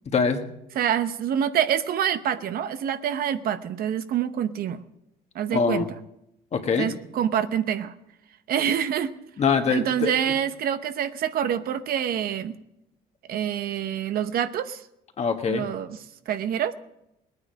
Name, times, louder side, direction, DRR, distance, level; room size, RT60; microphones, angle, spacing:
voice 1, 0.0-0.5 5.5-5.9 6.5-6.9 9.4-10.1 15.2-15.6, left 6 dB, 40° left, 5 dB, 1.6 m, -23 dB
voice 2, 0.8-4.8 5.3-5.9 6.8-7.9 8.5-9.1 9.7-12.6 13.3-14.8 15.5-16.0 16.3-16.7, right 9 dB, 60° right, 11 dB, 0.8 m, -26 dB
19.5 x 9.7 x 5.1 m, 0.82 s
cardioid pair, 110°, 17 cm